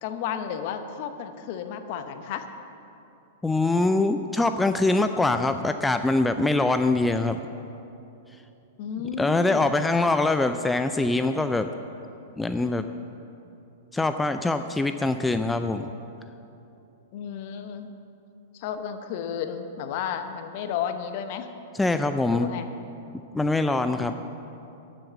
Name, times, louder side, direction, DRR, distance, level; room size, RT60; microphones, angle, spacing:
voice 1, 0.0-2.5 8.8-9.7 10.7-10.8 17.1-17.9 18.5-21.5 22.3-22.7 23.9-24.2, left 8 dB, 50° left, 8 dB, 0.9 m, -33 dB
voice 2, 3.4-7.4 9.2-11.7 12.4-12.8 13.9-15.9 21.7-22.5 23.3-24.2, left 2 dB, 10° left, 8 dB, 0.4 m, -23 dB
11.5 x 7.2 x 7.3 m, 2.8 s
figure-of-eight pair, 105°, 0 cm